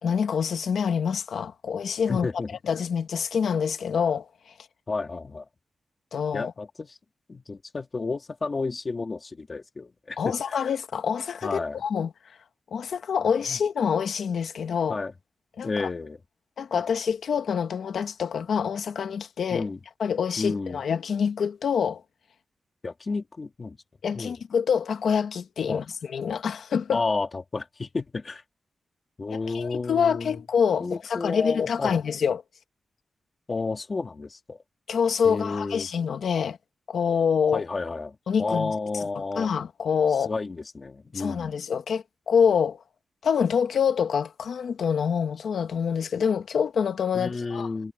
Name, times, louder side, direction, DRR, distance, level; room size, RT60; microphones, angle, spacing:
voice 1, 0.0-2.3 2.6-4.3 6.1-6.5 10.2-12.1 12.7-15.0 15.6-15.9 16.6-19.7 20.0-22.0 24.0-27.0 29.3-32.4 34.9-36.6 36.9-37.6 38.3-38.7 39.2-40.3 41.1-42.8 43.2-47.7, left 7 dB, 80° left, 1.9 m, -26 dB
voice 2, 2.1-2.5 4.9-5.4 6.3-6.9 7.3-10.3 11.4-11.8 13.5-13.6 14.9-15.1 15.6-16.2 19.5-19.8 20.4-20.8 22.8-23.8 24.1-24.4 25.7-25.8 26.9-28.4 29.2-30.4 30.8-32.0 33.5-34.6 35.2-35.9 37.5-39.5 40.3-41.6 47.1-47.9, left 3 dB, 35° left, 2.2 m, -31 dB
wide cardioid pair, 155°, 0 cm